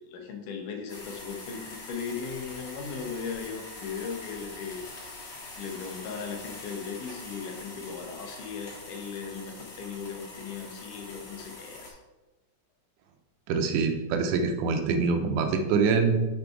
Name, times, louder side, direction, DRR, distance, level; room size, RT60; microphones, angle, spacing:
voice 1, 0.0-4.8 5.6-12.0, left 5 dB, 90° left, 3 dB, 2.5 m, -37 dB
sound 1, 0.9-11.9, left 2 dB, 60° left, 2.8 m, -44 dB
voice 2, 13.5-16.2, right 5 dB, 85° right, 5 dB, 2.3 m, -25 dB
6.0 x 5.2 x 4.6 m, 1.1 s
omnidirectional pair, 3.6 m